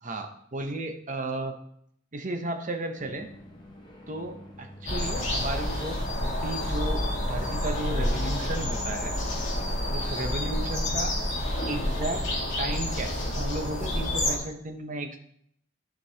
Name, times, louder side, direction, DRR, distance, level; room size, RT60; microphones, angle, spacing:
voice 1, 0.0-1.5 2.1-3.3 4.1-7.0 7.3-9.2 9.9-11.2 11.7-15.2, right 2 dB, 40° right, 6 dB, 0.8 m, -34 dB
sound 1, 3.0-11.8, left 1 dB, 25° left, 1.2 m, -46 dB
sound 2, 4.9-14.4, left 1 dB, 40° left, 2.0 m, -29 dB
12.0 x 5.2 x 2.9 m, 0.68 s
head